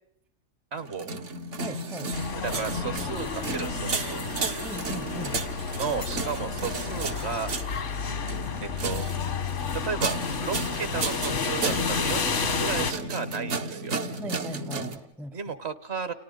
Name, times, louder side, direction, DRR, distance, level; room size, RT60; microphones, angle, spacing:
voice 1, 0.7-1.1 2.4-4.3 5.7-7.5 8.0-8.2 8.6-9.2 9.7-14.0 15.3-16.1, right 6 dB, 65° right, 12 dB, 1.4 m, -34 dB
sound 1, 0.8-15.0, right 2 dB, 80° right, 1.6 m, -33 dB
voice 2, 1.6-2.1 4.6-5.3 14.2-15.4, right 1 dB, ahead, 13 dB, 0.5 m, -39 dB
sound 2, 2.1-12.9, left 5 dB, 85° left, 1.6 m, -31 dB
30.0 x 29.5 x 3.9 m, 0.77 s
omnidirectional pair, 1.2 m